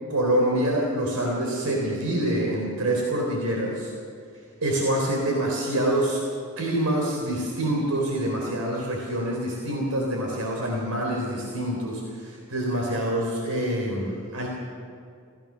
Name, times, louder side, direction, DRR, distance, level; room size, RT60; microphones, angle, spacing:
voice 1, 0.1-3.9 4.6-6.2 6.6-14.5, right 1 dB, 85° right, 0 dB, 3.8 m, -26 dB
27.0 x 16.5 x 6.4 m, 2.3 s
head